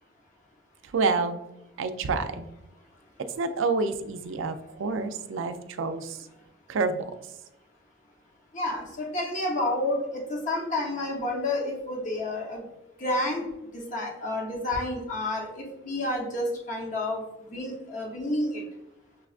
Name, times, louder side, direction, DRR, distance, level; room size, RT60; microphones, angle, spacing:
voice 1, 0.8-1.4 1.8-2.5 3.4-6.3 6.7-7.1, right 4 dB, 75° right, 9 dB, 0.4 m, -28 dB
voice 2, 8.5-12.6 13.0-13.4 13.7-18.6, left 1 dB, 40° left, -2 dB, 0.8 m, -30 dB
6.1 x 2.3 x 2.4 m, 0.91 s
head